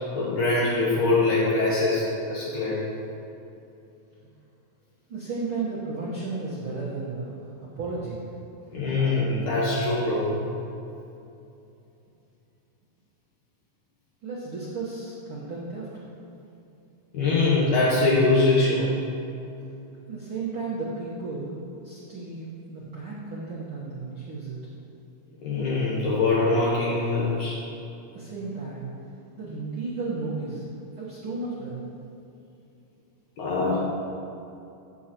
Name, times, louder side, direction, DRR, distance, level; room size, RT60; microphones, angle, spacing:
voice 1, 0.1-2.8 8.7-10.3 17.1-18.9 25.4-27.6 33.4-33.9, left 2 dB, 70° left, -7 dB, 2.5 m, -23 dB
voice 2, 5.1-8.2 8.7-9.1 14.2-16.1 20.1-24.6 28.1-28.9 29.4-30.6 30.9-31.9, right 3 dB, 60° right, -8 dB, 1.5 m, -34 dB
14.5 x 7.2 x 3.0 m, 2.7 s
omnidirectional pair, 4.0 m